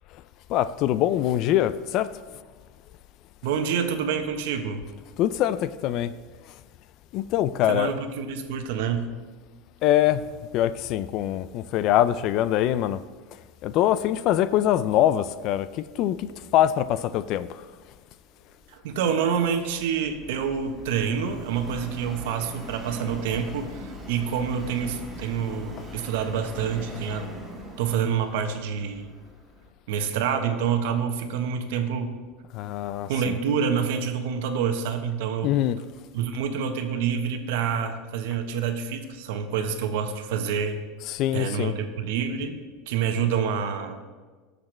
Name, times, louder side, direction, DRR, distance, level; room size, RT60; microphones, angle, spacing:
voice 1, 0.5-2.1 5.2-6.1 7.1-7.9 9.8-10.3 10.5-13.0 13.6-17.7 32.5-33.4 35.4-35.8 41.1-41.7, left 12 dB, 50° left, 0.4 m, -23 dB
voice 2, 3.4-4.8 7.7-9.1 18.7-27.3 27.8-29.1 29.9-32.1 33.1-35.5 36.1-40.8 41.3-42.6 42.9-44.0, right 7 dB, 80° right, 1.1 m, -27 dB
Subway metro underground, 18.4-29.7, equal, 5° right, 2.3 m, -41 dB
16.5 x 6.6 x 3.3 m
supercardioid pair, 140°, 0 cm